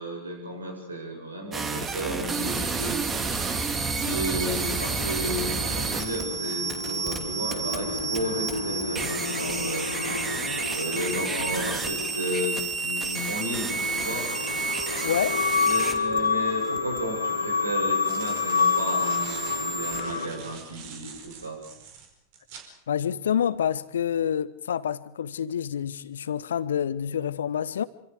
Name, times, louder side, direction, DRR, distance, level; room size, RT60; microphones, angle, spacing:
voice 1, 0.0-3.1 4.0-9.9 10.7-14.3 15.6-21.6, equal, 80° right, 7.4 m, -33 dB
sound 1, 1.5-20.0, right 4 dB, 20° right, 2.9 m, -31 dB
sound 2, 3.3-12.5 13.2-20.3, left 5 dB, 80° left, 3.4 m, -30 dB
voice 2, 15.0-15.4 22.9-27.8, left 9 dB, 65° left, 1.0 m, -27 dB
sound 3, 17.7-22.7, right 6 dB, 45° right, 4.6 m, -45 dB
27.0 x 26.0 x 5.0 m
figure-of-eight pair, 90°, 0 cm